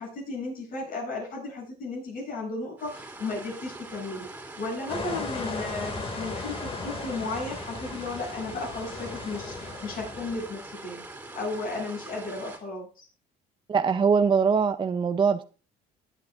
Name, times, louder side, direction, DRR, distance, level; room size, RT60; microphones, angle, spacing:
voice 1, 0.0-11.0 11.3-13.1, left 3 dB, 60° left, -2 dB, 8.0 m, -35 dB
sound 1, 2.8-12.6, right 2 dB, 10° right, 2.9 m, -43 dB
sound 2, 4.9-10.5, left 3 dB, 35° left, 2.3 m, -36 dB
voice 2, 13.7-15.4, right 6 dB, 30° right, 9 dB, 0.6 m, -22 dB
21.5 x 8.4 x 2.5 m, 0.35 s
cardioid pair, 110°, 17 cm